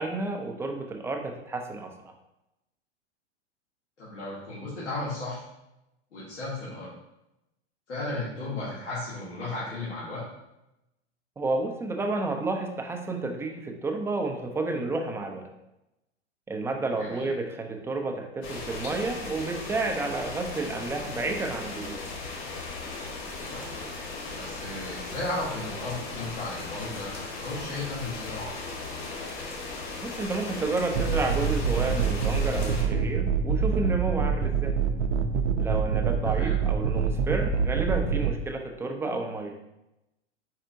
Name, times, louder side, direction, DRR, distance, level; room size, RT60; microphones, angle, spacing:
voice 1, 0.0-1.9 11.4-15.5 16.5-22.0 30.0-34.8 35.6-39.5, right 3 dB, 10° right, 3 dB, 0.4 m, -31 dB
voice 2, 4.0-5.4 6.1-6.9 7.9-10.2 17.0-17.3 23.4-23.9 24.3-28.5 36.2-36.5, left 2 dB, 90° left, -9 dB, 1.6 m, -35 dB
sound 1, 18.4-32.8, left 3 dB, 55° left, 1.5 m, -37 dB
sound 2, 30.9-38.3, right 6 dB, 80° right, 0.5 m, -26 dB
4.6 x 4.2 x 2.6 m, 0.90 s
hypercardioid pair, 105°, 35 cm